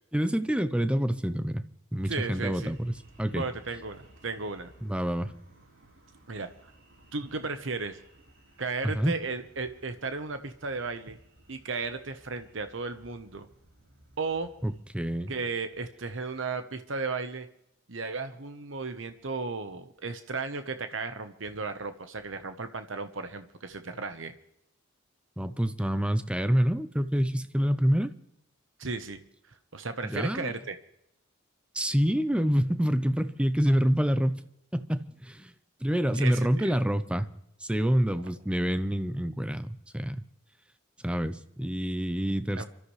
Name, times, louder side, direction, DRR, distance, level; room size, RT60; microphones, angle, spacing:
voice 1, 0.1-1.6 1.9-2.9 3.2-3.4 4.8-5.3 8.8-9.1 14.6-15.3 25.4-28.1 30.0-30.5 31.7-34.4 34.7-35.5 35.8-37.3 37.6-40.2 41.0-42.6, equal, 5° right, 11 dB, 0.7 m, -27 dB
sound 1, 1.9-14.8, right 1 dB, 85° right, 6.1 m, -58 dB
voice 2, 2.1-2.7 3.3-4.7 6.3-6.5 7.1-8.0 8.6-11.2 11.5-13.5 14.2-14.5 15.3-17.5 17.9-24.3 28.8-29.2 29.7-30.7 36.1-36.7 42.6-42.7, right 4 dB, 70° right, 9 dB, 1.1 m, -35 dB
28.0 x 13.5 x 3.3 m, 0.77 s
head